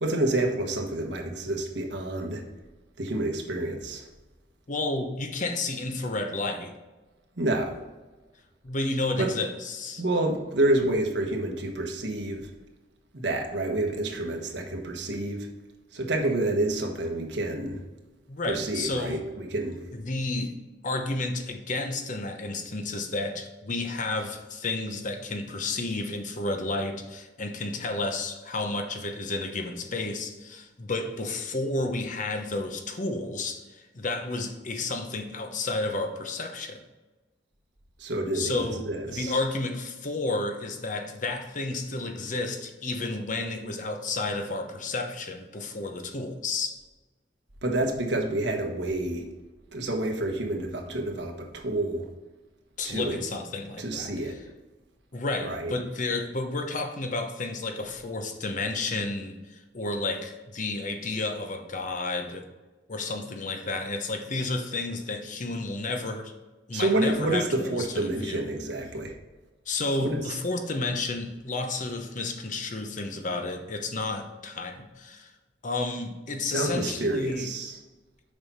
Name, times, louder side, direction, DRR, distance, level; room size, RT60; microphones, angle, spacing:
voice 1, 0.0-2.4 3.0-4.1 7.4-7.7 9.2-9.3 10.0-12.5 13.1-15.5 15.9-17.8 18.4-19.8 38.0-39.4 47.6-49.2 49.7-52.1 52.8-53.2 53.8-54.3 55.4-55.7 66.7-69.1 70.0-70.4 76.4-77.8, right 2 dB, 75° right, 2 dB, 1.3 m, -28 dB
voice 2, 4.7-6.7 8.6-10.0 18.3-19.2 20.0-20.5 20.8-36.8 38.3-46.8 52.8-54.1 55.1-62.4 62.9-66.3 66.7-68.5 69.7-75.3 75.6-77.5, left 2 dB, 45° left, 5 dB, 0.9 m, -31 dB
6.9 x 5.5 x 4.2 m, 1.2 s
head